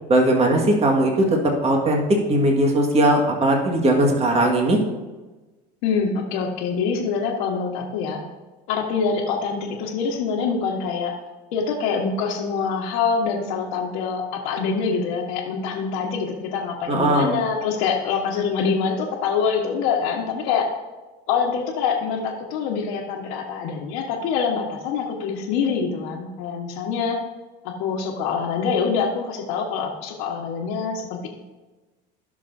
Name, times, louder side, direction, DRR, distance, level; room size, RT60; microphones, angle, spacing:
voice 1, 0.1-4.8 16.9-17.3, right 1 dB, 30° right, 1 dB, 1.8 m, -19 dB
voice 2, 5.8-8.2 8.7-11.1 11.5-20.7 21.3-27.2 27.6-31.3, left 5 dB, 75° left, -4 dB, 1.4 m, -25 dB
16.0 x 6.1 x 2.7 m, 1.2 s
supercardioid pair, 100°, 21 cm